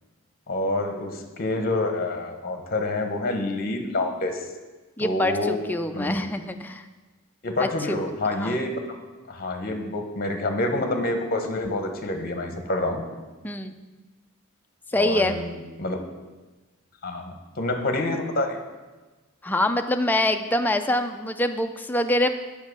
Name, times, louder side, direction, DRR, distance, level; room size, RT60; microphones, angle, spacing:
voice 1, 0.5-4.5 5.0-5.6 5.9-6.2 7.4-8.8 9.3-13.0 14.9-16.0 17.0-18.6, left 2 dB, 45° left, 5 dB, 0.9 m, -27 dB
voice 2, 5.0-6.8 7.6-8.0 8.3-8.6 13.4-13.8 14.9-15.4 19.4-22.3, left 1 dB, 10° left, 7 dB, 0.4 m, -25 dB
7.4 x 5.1 x 6.4 m, 1.2 s
head